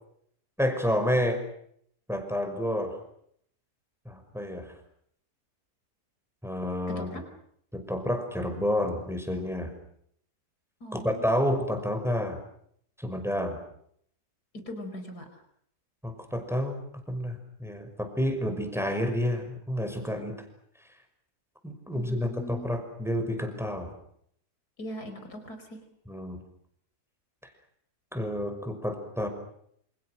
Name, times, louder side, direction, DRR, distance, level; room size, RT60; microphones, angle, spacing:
voice 1, 0.6-1.4 2.1-3.0 4.1-4.7 6.4-7.1 7.7-9.7 10.9-12.4 13.0-13.6 16.0-20.3 21.6-23.9 26.1-26.4 28.1-29.3, equal, ahead, 6 dB, 5.6 m, -29 dB
voice 2, 10.8-11.2 14.7-15.4 21.9-22.7 24.8-25.8, equal, 80° left, 7 dB, 5.3 m, -40 dB
28.5 x 28.0 x 6.4 m, 0.69 s
omnidirectional pair, 1.6 m